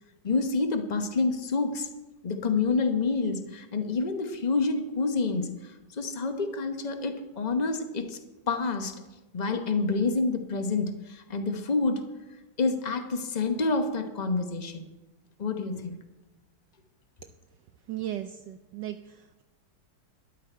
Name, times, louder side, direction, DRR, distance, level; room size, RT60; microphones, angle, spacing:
voice 1, 0.2-1.9 2.2-5.5 5.9-8.2 8.5-9.0 9.3-12.0 12.6-14.8 15.4-16.0, left 3 dB, 40° left, 7 dB, 0.5 m, -28 dB
voice 2, 17.9-19.4, right 12 dB, 75° right, 9 dB, 1.0 m, -37 dB
12.5 x 11.5 x 4.5 m, 1.1 s
omnidirectional pair, 2.3 m